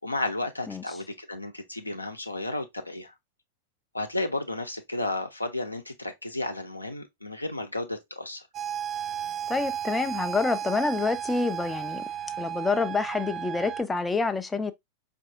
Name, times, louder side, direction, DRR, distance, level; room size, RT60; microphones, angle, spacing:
voice 1, 0.0-3.1 3.9-8.5, left 2 dB, 85° left, 0.6 m, -33 dB
sound 1, 8.5-13.8, right 9 dB, 35° right, 0.6 m, -34 dB
voice 2, 9.5-12.0 12.4-14.7, left 4 dB, 10° left, 0.3 m, -27 dB
4.6 x 2.6 x 2.6 m
figure-of-eight pair, 90°, 0 cm